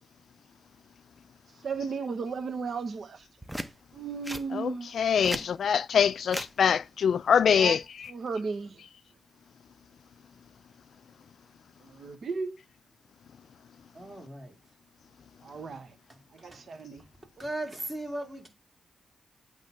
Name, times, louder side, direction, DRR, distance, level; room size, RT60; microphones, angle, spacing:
voice 1, 1.6-3.3 3.9-5.5 7.5-7.8 8.1-8.8 11.8-12.6 15.4-15.9 16.3-17.0, right 4 dB, 65° right, 0.9 m, -35 dB
sound 1, 3.4-3.7 4.2-4.5 5.0-5.5 6.3-6.5 7.8-8.1, equal, 5° right, 0.7 m, -36 dB
voice 2, 4.5-7.8, left 7 dB, 75° left, 0.3 m, -24 dB
voice 3, 13.9-14.5 16.1-16.6 17.4-18.5, right 1 dB, 20° right, 2.7 m, -38 dB
8.3 x 3.3 x 5.3 m
cardioid pair, 95°, 0 cm